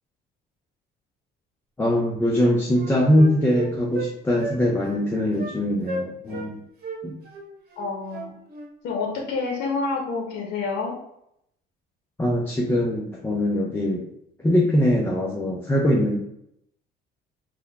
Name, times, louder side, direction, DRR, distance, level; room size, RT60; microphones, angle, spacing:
voice 1, 1.8-6.6 7.0-7.2 12.2-14.1 14.4-16.2, left 1 dB, 10° left, -2 dB, 0.4 m, -22 dB
Wind instrument woodwind instrument, 1.9-2.1 2.4-4.1 4.4-4.6 4.9-5.0 5.4-5.6 5.8-6.5 6.8-8.7, right 2 dB, 55° right, 0.9 m, -34 dB
voice 2, 7.8-8.4 8.8-11.0, left 4 dB, 65° left, 0 dB, 0.8 m, -28 dB
3.8 x 2.1 x 3.4 m, 0.77 s
cardioid pair, 135°, 19 cm